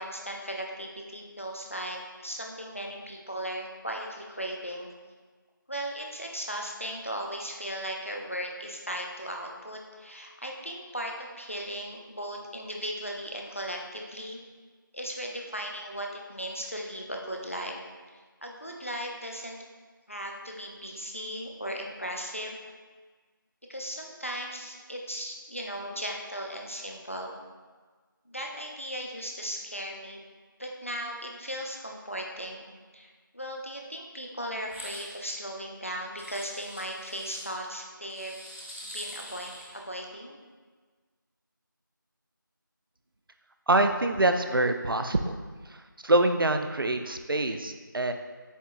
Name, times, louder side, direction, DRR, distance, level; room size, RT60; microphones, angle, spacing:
voice 1, 0.0-4.9 5.7-14.4 14.9-17.8 18.1-19.6 20.1-22.6 23.7-27.4 28.3-30.2 30.6-32.7 32.9-38.4 38.8-40.4, equal, 40° left, 0 dB, 0.5 m, -37 dB
sound 1, 34.6-35.2 36.2-37.5 38.1-39.8, equal, 35° right, 0.6 m, -44 dB
voice 2, 43.7-45.4 45.7-48.1, right 2 dB, 80° right, 7 dB, 0.4 m, -25 dB
7.8 x 2.8 x 2.5 m, 1.4 s
figure-of-eight pair, 180°, 11 cm